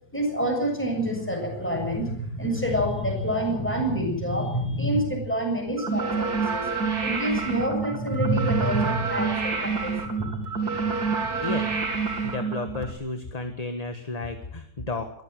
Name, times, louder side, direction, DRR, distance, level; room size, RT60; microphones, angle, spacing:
voice 1, 0.1-6.7 7.0-10.5, right 1 dB, 5° left, 1 dB, 7.5 m, -27 dB
sound 1, 5.8-12.9, right 4 dB, 65° right, 3.1 m, -28 dB
voice 2, 12.2-15.2, left 3 dB, 25° left, 6 dB, 1.6 m, -32 dB
22.5 x 15.0 x 7.7 m, 0.72 s
omnidirectional pair, 1.8 m